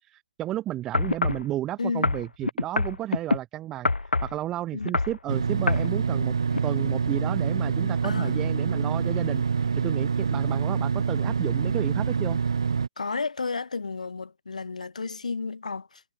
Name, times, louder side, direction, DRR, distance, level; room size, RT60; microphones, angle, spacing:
voice 1, 0.1-3.9 4.2-6.3 6.6-9.4 9.8-12.4, right 14 dB, 5° right, 1.4 m, -32 dB
sound 1, 0.9-1.5 2.0-3.4 3.8-4.4 4.8-5.2 5.7-5.9 6.5-6.6, left 3 dB, 85° left, 2.1 m, -25 dB
sound 2, 5.3-12.9, right 5 dB, 30° right, 1.2 m, -26 dB
voice 2, 8.0-8.4 13.0-16.0, left 4 dB, 45° left, 5.5 m, -32 dB
hypercardioid pair, 175°, 5 cm